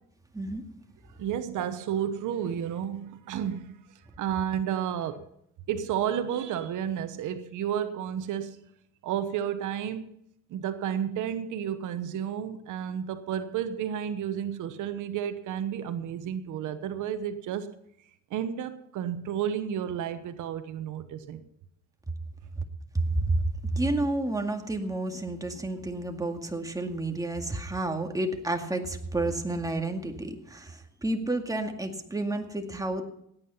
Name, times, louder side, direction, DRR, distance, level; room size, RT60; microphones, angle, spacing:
voice 1, 1.2-5.2 5.7-8.7 9.0-10.2 10.5-17.7 18.3-21.4, right 9 dB, 85° right, 1.1 m, -32 dB
voice 2, 22.9-23.5 23.7-33.0, right 2 dB, 10° right, 2.1 m, -30 dB
17.0 x 9.7 x 5.6 m
cardioid pair, 90°, 30 cm